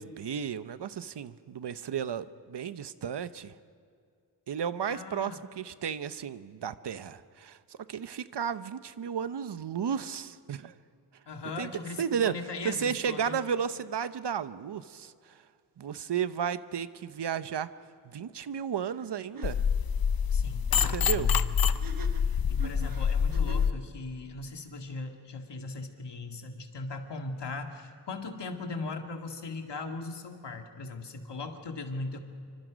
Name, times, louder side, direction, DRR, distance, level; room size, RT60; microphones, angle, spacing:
voice 1, 0.0-3.5 4.5-10.7 11.6-11.7 12.0-12.4 12.6-15.1 15.8-17.7 18.0-19.6 20.9-21.3, right 7 dB, 80° right, 13 dB, 0.9 m, -33 dB
voice 2, 4.9-5.4 11.3-13.4 20.3-21.5 22.3-32.2, left 3 dB, 85° left, 4 dB, 2.1 m, -39 dB
sound 1, 19.0-19.1 19.3-19.5 21.7-23.8, right 3 dB, 55° right, 1.3 m, -45 dB
sound 2, 19.4-23.7, left 7 dB, 60° left, 0.8 m, -26 dB
27.0 x 25.0 x 5.2 m, 2.3 s
wide cardioid pair, 100°, 41 cm